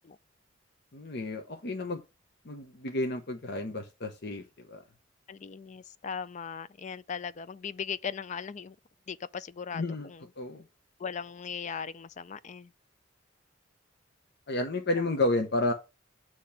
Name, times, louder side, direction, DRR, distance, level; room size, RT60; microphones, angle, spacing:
voice 1, 0.9-2.0 2.4-4.8 9.7-10.1 10.4-10.6 14.5-15.7, left 2 dB, 60° left, 0.8 m, -31 dB
voice 2, 5.3-8.8 9.1-10.3 11.0-12.7 14.9-15.1, left 6 dB, 40° left, 0.4 m, -38 dB
8.5 x 3.0 x 5.7 m
head